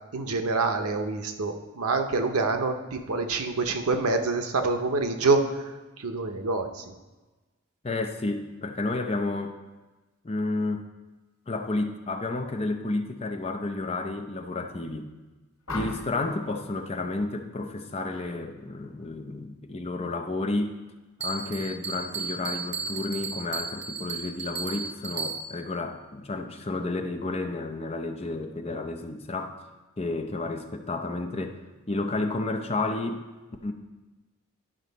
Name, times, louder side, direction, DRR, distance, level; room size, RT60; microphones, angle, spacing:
voice 1, 0.1-6.9, right 3 dB, 90° right, 6 dB, 0.8 m, -26 dB
voice 2, 7.8-9.6 10.2-10.8 11.5-15.1 15.7-20.7 21.2-29.6 30.0-31.6 31.9-33.3 33.6-33.7, left 2 dB, 25° left, 5 dB, 0.5 m, -31 dB
sound 1, 15.7-16.3 18.0-18.3 18.7-19.1, left 2 dB, 65° left, 1.8 m, -37 dB
Bell, 21.2-25.7, right 5 dB, 50° right, 0.7 m, -35 dB
11.0 x 5.5 x 4.0 m, 1.2 s
head